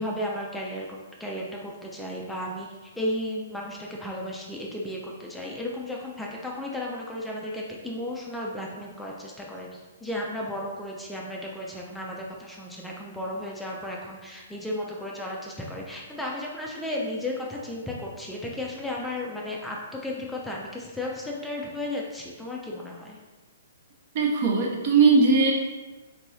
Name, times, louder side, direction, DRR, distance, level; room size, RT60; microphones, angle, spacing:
voice 1, 0.0-23.2, left 1 dB, 5° left, -3 dB, 0.4 m, -34 dB
voice 2, 24.1-25.5, right 4 dB, 45° right, 0 dB, 0.6 m, -19 dB
2.9 x 2.6 x 3.1 m, 1.2 s
figure-of-eight pair, 120°, 0 cm